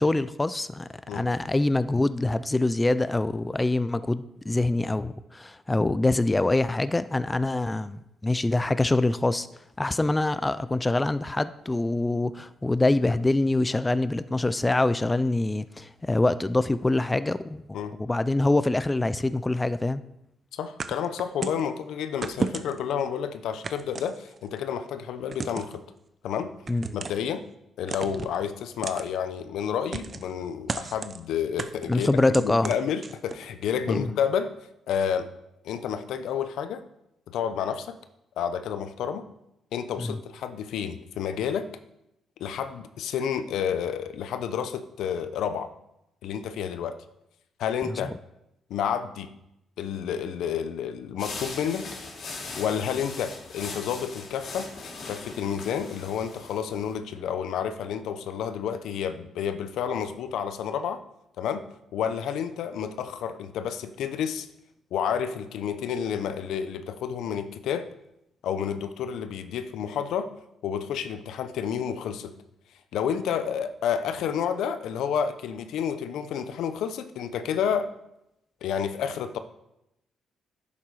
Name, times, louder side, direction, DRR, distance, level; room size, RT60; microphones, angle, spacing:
voice 1, 0.0-9.5 9.8-20.0 26.7-26.9 31.9-32.7 33.9-34.1 40.0-40.2 47.9-48.0, left 2 dB, 15° left, 14 dB, 0.4 m, -25 dB
voice 2, 20.5-25.8 26.2-26.5 26.9-27.4 27.8-32.1 32.4-34.5 34.9-35.3 35.6-36.8 37.3-38.0 38.4-39.2 39.7-41.7 42.4-45.7 46.2-47.0 47.6-48.1 48.7-49.3 49.8-51.9 52.6-54.7 55.1-61.0 61.4-64.5 64.9-67.9 68.4-70.3 70.6-72.3 72.9-77.9 78.6-79.4, left 8 dB, 80° left, 10 dB, 0.8 m, -30 dB
sound 1, 20.8-21.7 22.2-22.9 23.6-24.6 25.3-25.8 26.7-27.3 27.9-28.4 28.8-29.1 29.9-30.3 30.7-31.2 31.6-33.5, right 5 dB, 35° right, 0.7 m, -34 dB
sound 2, 51.2-56.9, left 3 dB, 60° left, 2.8 m, -40 dB
11.0 x 7.5 x 4.8 m, 0.86 s
cardioid pair, 110°, 0 cm